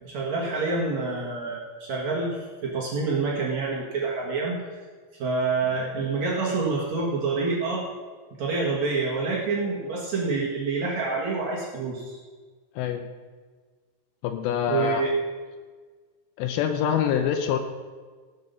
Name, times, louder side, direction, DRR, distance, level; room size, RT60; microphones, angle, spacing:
voice 1, 0.0-4.6 5.2-7.8 8.4-12.2 14.7-15.1, right 3 dB, 55° right, -3 dB, 2.3 m, -27 dB
voice 2, 12.8-13.1 14.2-15.1 16.4-17.6, left 8 dB, 85° left, 6 dB, 2.9 m, -25 dB
18.0 x 7.6 x 5.4 m, 1.5 s
omnidirectional pair, 5.0 m